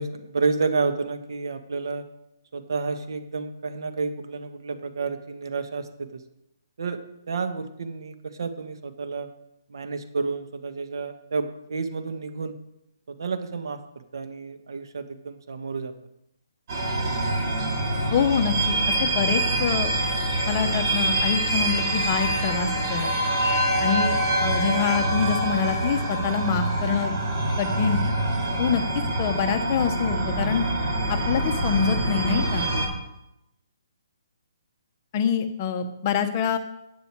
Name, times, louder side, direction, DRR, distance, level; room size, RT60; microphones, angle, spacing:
voice 1, 0.0-2.0 2.5-6.2 6.8-7.0 7.3-9.3 9.7-12.5 13.1-15.9 29.2-29.5, right 4 dB, 70° right, 8 dB, 1.4 m, -30 dB
sound 1, 16.7-32.9, right 1 dB, 45° right, 4.8 m, -25 dB
voice 2, 18.1-19.9 20.5-23.1 23.8-24.2 24.4-27.1 27.6-28.0 28.6-28.8 29.2-30.6 31.1-32.7 35.1-36.6, left 7 dB, 30° left, 7 dB, 1.0 m, -25 dB
11.0 x 9.2 x 4.7 m, 0.84 s
hypercardioid pair, 155°, 2 cm